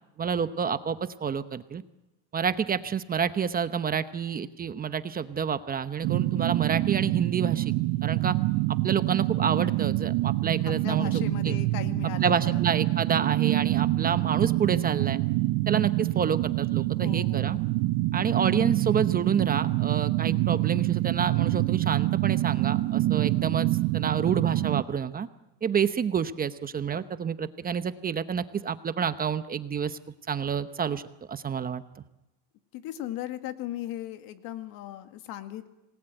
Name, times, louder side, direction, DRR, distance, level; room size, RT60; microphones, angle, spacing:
voice 1, 0.2-1.8 2.3-7.7 8.0-8.4 8.8-11.5 12.2-15.2 15.7-17.6 18.1-23.7 23.9-25.3 25.6-30.0 30.3-31.0 31.3-31.8, right 7 dB, 25° right, 12 dB, 0.9 m, -28 dB
sound 1, 6.0-24.8, right 17 dB, 65° right, 0.9 m, -26 dB
voice 2, 10.8-12.7 17.0-17.6 32.7-35.7, left 13 dB, 65° left, 9 dB, 2.1 m, -37 dB
27.0 x 19.5 x 9.1 m, 0.96 s
cardioid pair, 140°, 37 cm